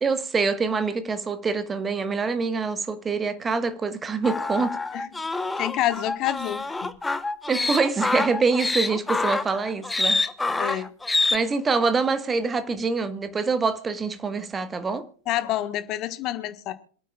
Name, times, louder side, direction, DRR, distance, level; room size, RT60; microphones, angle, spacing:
voice 1, 0.0-4.8 7.5-10.2 10.6-10.8 11.3-15.1, right 4 dB, 15° right, 1.4 m, -25 dB
sound 1, 4.2-11.4, left 3 dB, 10° left, 1.0 m, -26 dB
voice 2, 5.6-6.9 10.6-10.9 15.3-16.7, left 13 dB, 35° left, 1.4 m, -28 dB
27.0 x 9.1 x 2.4 m
figure-of-eight pair, 90°, 0 cm